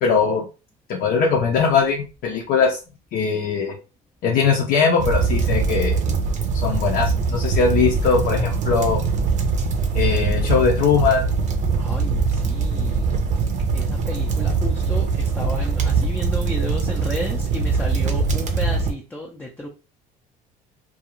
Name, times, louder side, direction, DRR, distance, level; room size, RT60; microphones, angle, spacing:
voice 1, 0.0-0.5 0.9-2.8 3.1-3.7 4.2-6.0 6.5-9.0 9.9-11.3, left 5 dB, 60° left, 0.6 m, -20 dB
sound 1, 5.0-18.9, right 4 dB, 45° right, 0.6 m, -22 dB
voice 2, 11.8-13.1 13.3-13.5 13.7-19.7, left 1 dB, 10° left, 0.5 m, -33 dB
2.4 x 2.3 x 2.9 m
cardioid pair, 120°, 18 cm